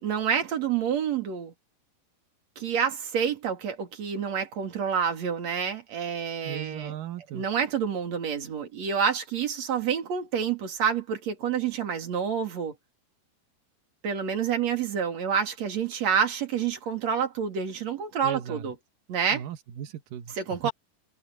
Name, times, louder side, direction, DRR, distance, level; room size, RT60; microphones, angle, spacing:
voice 1, 0.0-1.5 2.6-6.9 7.3-12.7 14.0-18.7 19.1-19.4 20.4-20.7, right 7 dB, 40° right, 3.2 m, -28 dB
voice 2, 6.4-7.5 18.2-18.7 19.3-20.4 20.6-20.7, right 10 dB, 80° right, 1.9 m, -37 dB
omnidirectional pair, 6.0 m